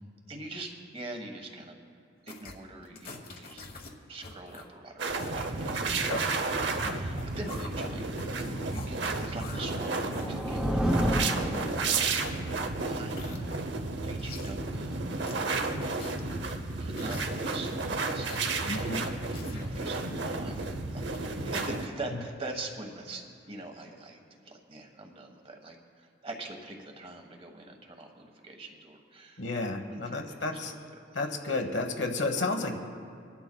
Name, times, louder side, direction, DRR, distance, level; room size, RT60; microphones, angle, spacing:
voice 1, 0.3-1.7 2.2-3.6 4.1-8.3 8.7-12.1 12.7-13.5 14.1-15.9 16.8-19.0 19.5-29.4 29.9-30.7, right 2 dB, 30° right, 3 dB, 1.3 m, -43 dB
sound 1, 2.3-2.5 2.8-3.9 4.2-4.7 5.1-8.9 9.2-11.8 12.2-12.5 13.0-13.8 14.2-14.6 15.0-15.4 16.0-16.4 17.0-17.4 18.0-18.5 18.8-19.7 20.2-20.6 21.1-21.2, left 2 dB, 55° left, 1.2 m, -46 dB
sound 2, 5.0-21.9, right 3 dB, 70° right, 0.8 m, -32 dB
sound 3, 9.5-12.4, equal, 5° right, 0.6 m, -30 dB
voice 2, 18.6-19.0 29.4-30.7 31.1-32.8, left 2 dB, 75° left, 5 dB, 1.2 m, -32 dB
25.0 x 11.5 x 2.3 m, 2.4 s
head